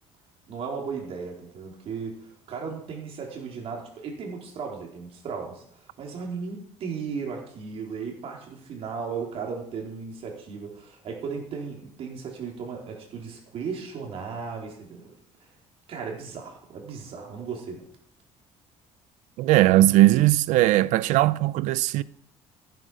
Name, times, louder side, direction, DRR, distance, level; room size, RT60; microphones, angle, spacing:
voice 1, 0.5-15.1 15.4-15.5 15.9-17.9, right 5 dB, 50° right, 4.1 m, -36 dB
voice 2, 19.4-22.0, right 16 dB, 80° right, 0.6 m, -19 dB
15.0 x 9.4 x 6.2 m
cardioid pair, 140°, 12 cm